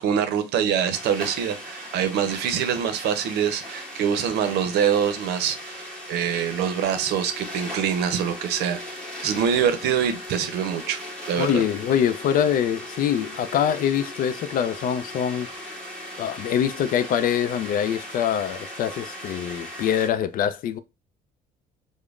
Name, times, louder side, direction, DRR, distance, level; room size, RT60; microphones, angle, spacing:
voice 1, 0.0-8.8 9.2-11.6, right 8 dB, 80° right, 0.6 m, -25 dB
sound 1, 0.9-20.1, left 1 dB, 5° left, 1.6 m, -38 dB
voice 2, 11.3-15.7 16.2-20.8, left 9 dB, 55° left, 0.4 m, -24 dB
5.0 x 2.1 x 2.4 m
cardioid pair, 110°, 17 cm